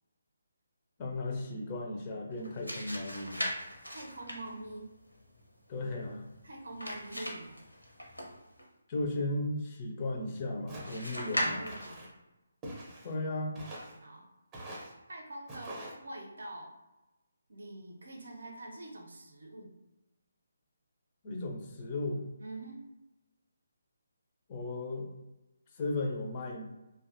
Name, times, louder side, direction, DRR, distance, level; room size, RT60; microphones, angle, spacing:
voice 1, 1.0-3.5 5.7-6.3 8.9-11.7 13.0-13.6 21.2-22.2 24.5-25.1 25.7-26.6, left 2 dB, 30° left, 0 dB, 0.4 m, -35 dB
sound 1, 2.3-8.7 10.8-12.1, equal, 90° left, 0.7 m, -39 dB
voice 2, 3.9-5.0 6.4-7.6 11.2-12.1 14.0-14.3 15.1-16.7 17.5-19.7 22.4-22.9, right 1 dB, 60° right, 0 dB, 0.5 m, -45 dB
Walk footsteps, 10.7-11.1 11.7-12.1 12.6-13.1 13.6-14.0 14.5-14.9 15.5-16.0, right 1 dB, 20° right, 0.7 m, -45 dB
2.6 x 2.2 x 2.5 m, 1.0 s
figure-of-eight pair, 145°, 0 cm